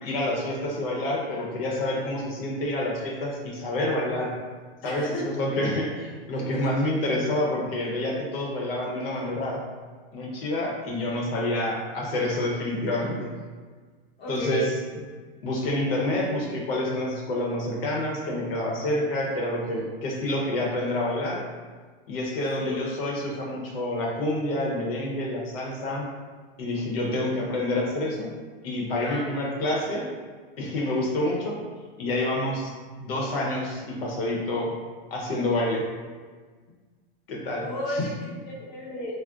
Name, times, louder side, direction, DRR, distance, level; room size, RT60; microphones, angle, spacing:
voice 1, 0.0-4.3 4.8-9.6 10.1-13.3 14.3-14.7 15.4-21.4 22.1-26.1 26.6-28.3 28.6-30.0 30.6-31.6 32.0-32.7 33.0-34.7 35.1-35.8 37.3-38.1, left 1 dB, 75° left, -2 dB, 0.8 m, -28 dB
voice 2, 4.8-5.2 6.4-6.7 14.2-14.7 22.6-22.8 26.9-27.2 29.0-29.3 37.6-39.1, equal, 35° left, -5 dB, 0.8 m, -33 dB
2.4 x 2.0 x 3.7 m, 1.5 s
supercardioid pair, 135°, 30 cm